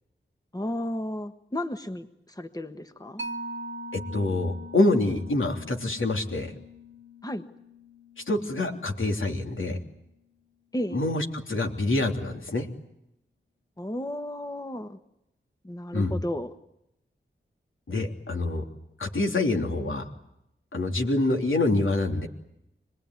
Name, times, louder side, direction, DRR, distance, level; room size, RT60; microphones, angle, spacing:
voice 1, 0.5-3.2 7.2-7.4 10.7-11.0 13.8-15.0 15.6-16.5, left 1 dB, 20° left, 9 dB, 1.3 m, -33 dB
Mallet percussion, 3.2-10.2, equal, 70° right, 1.3 m, -42 dB
voice 2, 3.9-6.5 8.3-9.8 10.9-12.7 15.9-16.1 17.9-18.6 19.0-20.0 20.7-22.3, left 2 dB, 75° left, 4 dB, 3.2 m, -26 dB
26.0 x 20.0 x 9.6 m, 0.83 s
wide cardioid pair, 65°, 21 cm